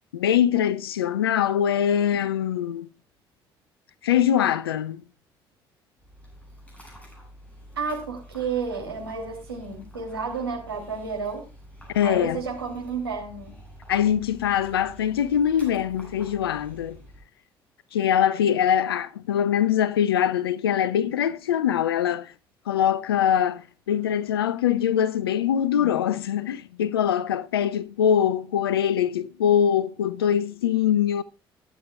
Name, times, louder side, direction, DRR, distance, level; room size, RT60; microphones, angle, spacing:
voice 1, 0.1-2.9 4.0-5.0 11.9-12.4 13.9-17.0 17.9-22.3 22.7-31.2, left 9 dB, 75° left, 0.5 m, -23 dB
Dog, 6.0-17.2, equal, 10° left, 7.9 m, -48 dB
voice 2, 7.7-11.4 12.0-13.5, right 5 dB, 80° right, 3.0 m, -31 dB
21.5 x 8.3 x 2.4 m
figure-of-eight pair, 50°, 13 cm